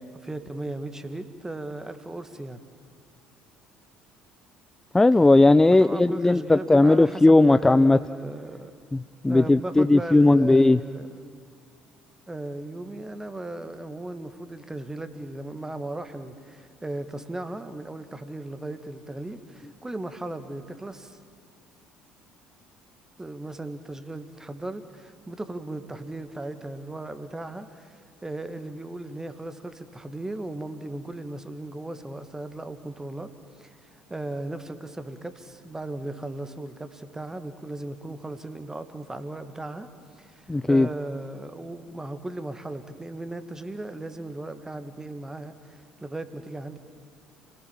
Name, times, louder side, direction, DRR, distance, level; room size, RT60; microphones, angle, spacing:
voice 1, 0.1-2.6 5.7-8.7 9.3-11.2 12.3-21.2 23.2-33.3 33.6-39.9 40.2-46.8, right 2 dB, 15° right, 10 dB, 2.0 m, -37 dB
voice 2, 4.9-8.0 8.9-10.8 40.5-40.9, left 2 dB, 10° left, 13 dB, 0.5 m, -17 dB
29.5 x 19.0 x 7.4 m, 2.3 s
figure-of-eight pair, 55°, 4 cm